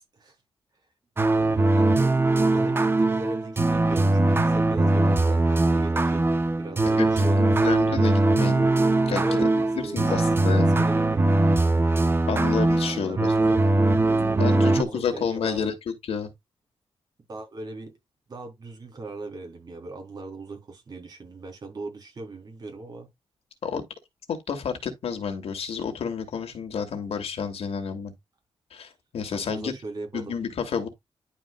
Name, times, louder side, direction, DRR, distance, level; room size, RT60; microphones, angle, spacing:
sound 1, 1.2-14.8, right 2 dB, 25° right, 0.9 m, -21 dB
voice 1, 1.2-2.2 2.5-6.3 6.6-7.7 9.2-10.2 10.5-12.0 12.7-13.6 14.4-15.7 17.3-17.9 18.3-23.1 29.3-30.4, right 2 dB, 40° right, 3.8 m, -39 dB
voice 2, 7.4-8.7 9.1-9.4 9.8-10.7 12.3-13.3 14.4-16.3 23.6-23.8 24.3-28.1 28.7-29.7 30.1-30.9, left 6 dB, 80° left, 2.5 m, -30 dB
11.5 x 5.1 x 2.4 m
wide cardioid pair, 150°, 10 cm